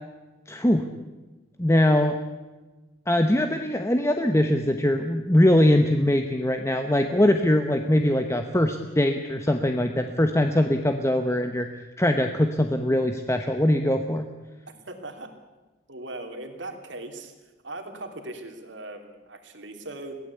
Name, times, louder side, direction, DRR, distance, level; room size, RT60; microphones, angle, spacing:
voice 1, 0.5-0.9 1.6-2.2 3.1-11.7 12.0-14.3, left 1 dB, 15° left, 6 dB, 1.0 m, -22 dB
voice 2, 14.9-15.3 15.9-17.3 17.6-20.2, right 2 dB, 70° right, 5 dB, 3.0 m, -39 dB
23.0 x 17.0 x 8.3 m, 1.2 s
head